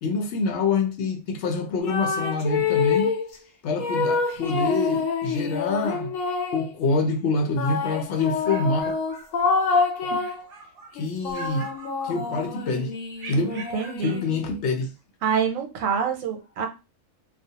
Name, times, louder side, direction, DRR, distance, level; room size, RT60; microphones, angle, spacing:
voice 1, 0.0-3.1 3.6-6.1 6.5-8.9 10.0-10.2 10.9-11.7 12.0-12.9 13.3-13.6 14.0-14.9, left 3 dB, 70° left, 0.8 m, -26 dB
sound 1, 1.8-3.3 3.8-6.7 7.6-10.4 11.0-14.6, left 5 dB, 90° left, 1.0 m, -27 dB
sound 2, 8.4-9.9 10.2-11.0 11.3-12.6 13.2-14.3, right 4 dB, 55° right, 0.7 m, -44 dB
voice 2, 13.5-14.2 15.2-16.7, right 6 dB, 85° right, 1.0 m, -26 dB
2.3 x 2.2 x 2.7 m
omnidirectional pair, 1.3 m